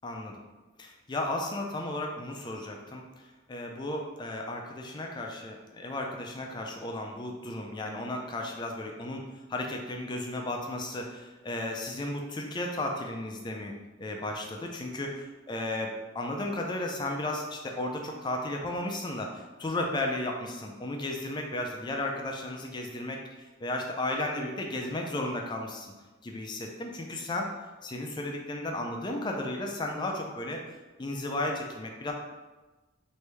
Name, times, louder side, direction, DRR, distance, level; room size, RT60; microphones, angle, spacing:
voice 1, 0.0-0.4 0.8-3.0 3.5-25.9 26.2-27.5 27.8-30.6 31.0-32.1, left 1 dB, 25° left, 1 dB, 0.4 m, -34 dB
3.1 x 2.6 x 3.3 m, 1.2 s
head